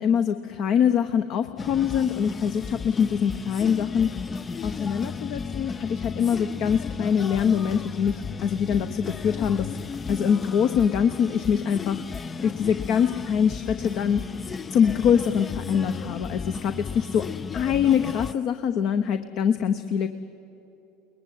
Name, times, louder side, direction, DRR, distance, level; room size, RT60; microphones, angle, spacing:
voice 1, 0.0-4.2 4.6-9.8 10.1-14.2 14.7-17.3 17.5-20.1, left 8 dB, 50° left, 9 dB, 0.9 m, -24 dB
sound 1, 1.6-18.3, left 5 dB, 25° left, 0.5 m, -34 dB
22.5 x 20.5 x 9.5 m, 2.9 s
hypercardioid pair, 80°, 0 cm